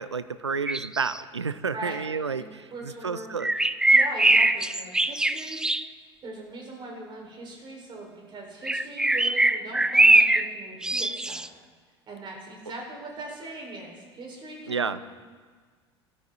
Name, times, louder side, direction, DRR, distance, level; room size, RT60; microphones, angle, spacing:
voice 1, 0.0-3.5 14.7-15.0, right 5 dB, 85° right, 14 dB, 0.5 m, -30 dB
sound 1, 0.7-1.2 3.4-5.9 8.6-10.5 10.8-11.5, right 2 dB, 5° right, 0.4 m, -21 dB
voice 2, 2.3-3.3 3.9-5.7 6.2-11.4 12.1-15.0, right 2 dB, 35° right, -1 dB, 4.7 m, -40 dB
20.0 x 13.0 x 4.0 m, 1.5 s
figure-of-eight pair, 70°, 14 cm